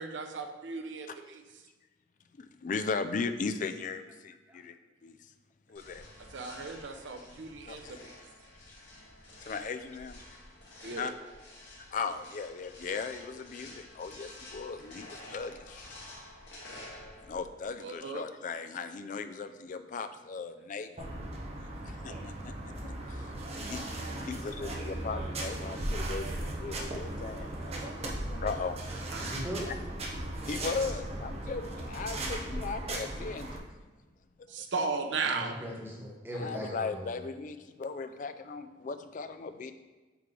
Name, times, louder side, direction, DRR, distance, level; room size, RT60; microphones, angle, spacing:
voice 1, 0.0-1.4 6.3-8.2 10.8-11.1 17.8-18.2 24.0-24.2 29.1-29.2 34.5-35.6, right 4 dB, 70° right, 6 dB, 0.6 m, -36 dB
voice 2, 2.4-4.8 5.0-5.2 5.7-6.1 7.7-7.9 9.4-10.2 11.0-11.1 11.9-15.9 17.3-21.1 21.8-23.3 23.7-23.8 24.3-27.5 28.0-28.8 29.7-29.8 30.4-33.5 36.3-39.7, left 4 dB, 40° left, 10 dB, 0.3 m, -37 dB
sound 1, 5.7-17.6, left 1 dB, 65° left, 1.8 m, -50 dB
sound 2, 21.0-33.6, right 1 dB, 35° right, 0.8 m, -37 dB
voice 3, 29.2-29.7 35.2-37.1, equal, 10° right, -3 dB, 1.0 m, -39 dB
7.9 x 3.2 x 3.8 m, 1.3 s
head